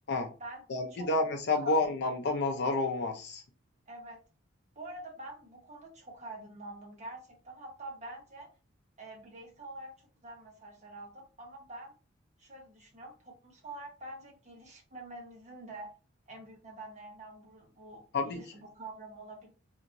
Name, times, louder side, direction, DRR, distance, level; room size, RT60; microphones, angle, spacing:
voice 1, 0.7-3.4 18.1-18.4, left 2 dB, 55° left, 0.5 m, -29 dB
voice 2, 3.9-4.2 4.7-8.5 9.0-10.0 10.2-12.0 12.4-15.9 16.3-19.5, right 2 dB, 35° right, 1.1 m, -46 dB
2.8 x 2.7 x 2.5 m
head